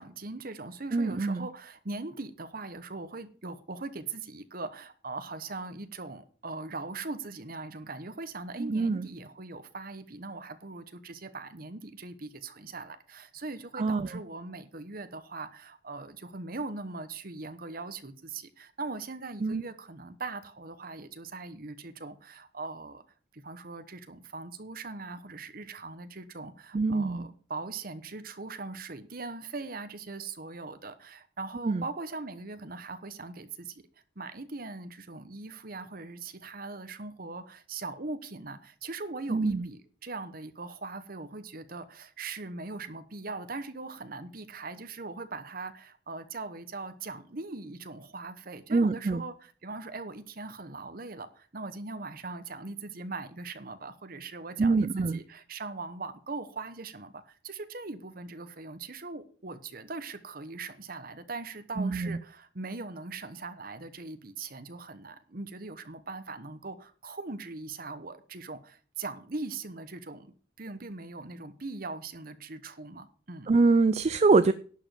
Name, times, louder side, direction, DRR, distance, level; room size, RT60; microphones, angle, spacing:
voice 1, 0.0-23.0 23.3-33.8 34.2-70.3 70.6-73.5, right 3 dB, 50° right, 1.1 m, -40 dB
voice 2, 0.9-1.5 8.6-9.1 13.7-14.2 19.4-19.6 26.7-27.3 31.6-31.9 39.3-39.7 48.7-49.2 54.6-55.2 61.8-62.2 73.5-74.5, right 3 dB, 35° right, 0.4 m, -25 dB
11.5 x 5.2 x 7.6 m
head